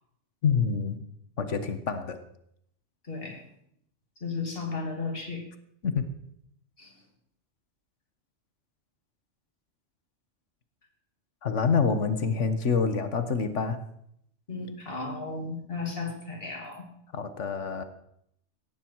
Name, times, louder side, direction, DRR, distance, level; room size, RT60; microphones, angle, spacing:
voice 1, 0.4-1.0 1.4-2.2 5.8-6.1 11.4-13.8 17.1-17.8, left 5 dB, 85° left, 9 dB, 1.6 m, -26 dB
voice 2, 3.1-3.4 4.2-5.4 6.8-6.9 14.5-16.9, left 3 dB, 50° left, 2 dB, 3.1 m, -34 dB
17.5 x 13.5 x 4.7 m, 0.72 s
omnidirectional pair, 1.2 m